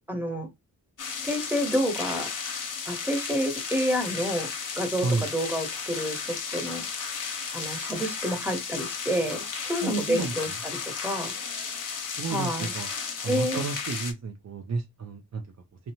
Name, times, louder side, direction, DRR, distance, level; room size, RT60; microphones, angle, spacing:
voice 1, 0.1-0.5 1.2-2.3 2.9-4.5 4.8-6.8 7.5-11.3 12.3-12.7 13.3-13.6, equal, 5° right, 1.2 m, -29 dB
sound 1, 1.0-14.1, left 5 dB, 50° left, 0.8 m, -34 dB
voice 2, 9.8-10.3 12.2-12.9 13.2-15.4, right 4 dB, 40° right, 0.6 m, -31 dB
2.7 x 2.2 x 2.9 m
cardioid pair, 55°, 40 cm